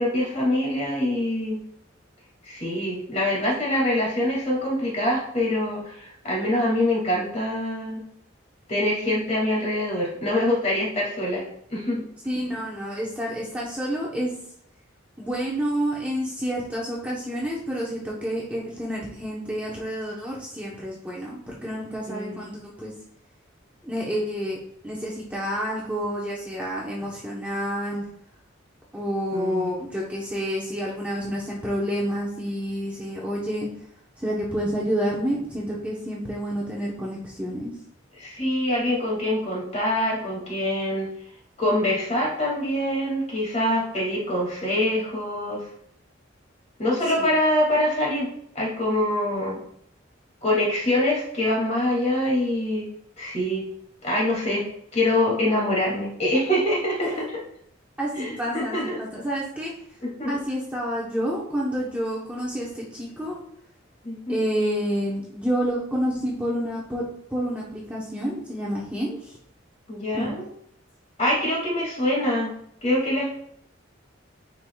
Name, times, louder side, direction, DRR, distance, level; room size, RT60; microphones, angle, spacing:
voice 1, 0.0-1.6 2.4-8.0 8.7-11.4 11.7-12.0 22.1-22.4 29.3-29.7 38.2-41.1 41.6-45.6 46.8-48.3 48.5-49.6 50.4-52.9 53.2-53.7 54.0-54.6 54.9-57.2 58.1-59.0 60.0-60.4 64.0-64.4 69.9-70.4 71.2-73.3, left 1 dB, 35° left, -3 dB, 2.3 m, -24 dB
voice 2, 12.2-14.3 15.2-22.9 23.8-24.6 24.8-28.0 28.9-33.7 34.2-37.7 47.2-47.3 57.1-57.3 58.0-59.7 60.3-63.4 64.3-67.0 67.3-69.3 70.1-70.3 72.2-72.4, equal, 5° right, -5 dB, 0.9 m, -29 dB
9.3 x 4.8 x 2.3 m, 0.71 s
head